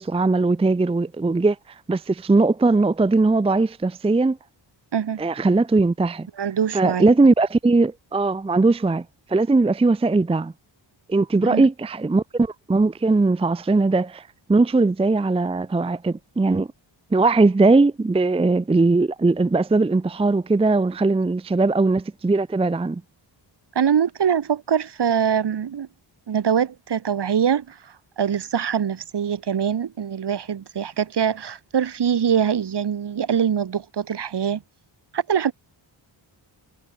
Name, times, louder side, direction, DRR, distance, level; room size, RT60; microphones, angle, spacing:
voice 1, 0.0-1.6 1.9-4.4 5.2-6.3 6.7-9.0 9.3-10.5 11.1-14.2 14.5-16.7 17.1-23.0, right 3 dB, 15° right, 0.5 m, -19 dB
voice 2, 4.9-5.2 6.4-7.1 11.4-11.7 23.8-25.9 26.3-27.8 28.2-34.6 35.1-35.5, right 8 dB, 60° right, 2.4 m, -23 dB
wide cardioid pair, 135°, 46 cm